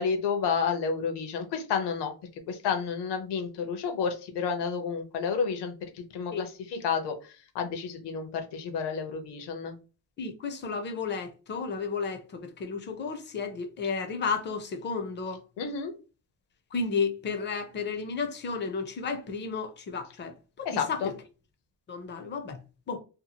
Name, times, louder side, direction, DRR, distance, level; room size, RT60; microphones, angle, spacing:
voice 1, 0.0-2.1 2.5-9.8 15.6-15.9 20.6-21.1, left 6 dB, 75° left, 0.8 m, -30 dB
voice 2, 10.2-15.4 16.7-21.0 21.9-22.6 22.9-23.0, left 5 dB, 30° left, 0.4 m, -33 dB
2.7 x 2.3 x 2.8 m
cardioid pair, 160°, 40 cm